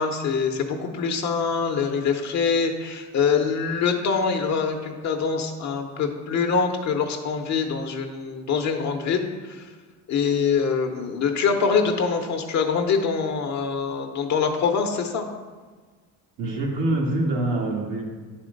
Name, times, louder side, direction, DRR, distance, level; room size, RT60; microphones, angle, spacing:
voice 1, 0.0-9.7 10.1-15.3, left 5 dB, 55° left, 4 dB, 0.8 m, -24 dB
voice 2, 16.4-18.0, right 2 dB, 80° right, -2 dB, 1.9 m, -25 dB
9.2 x 4.3 x 5.2 m, 1.4 s
cardioid pair, 120°, 34 cm